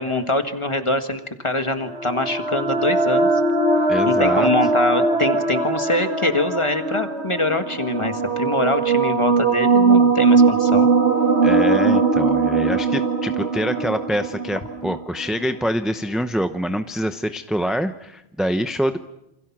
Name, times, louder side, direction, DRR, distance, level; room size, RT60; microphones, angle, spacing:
voice 1, 0.0-3.3 4.1-10.9, left 2 dB, 30° left, 6 dB, 1.9 m, -23 dB
sound 1, 1.8-15.5, right 4 dB, 85° right, 1.9 m, -20 dB
voice 2, 3.9-4.5 11.4-19.0, equal, ahead, 8 dB, 0.7 m, -25 dB
28.5 x 26.5 x 6.1 m, 0.87 s
omnidirectional pair, 1.1 m